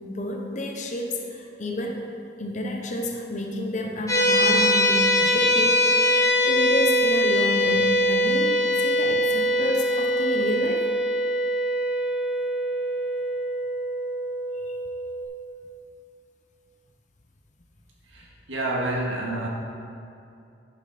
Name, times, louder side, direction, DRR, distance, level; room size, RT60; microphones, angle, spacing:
voice 1, 0.1-2.0 2.4-6.2 6.5-10.8 14.7-14.8, left 1 dB, 40° left, 1 dB, 0.8 m, -30 dB
sound 1, 4.1-15.2, equal, 20° left, 2.3 m, -22 dB
voice 2, 18.1-19.5, right 1 dB, 85° right, -3 dB, 1.8 m, -29 dB
10.5 x 6.8 x 4.2 m, 2.5 s
head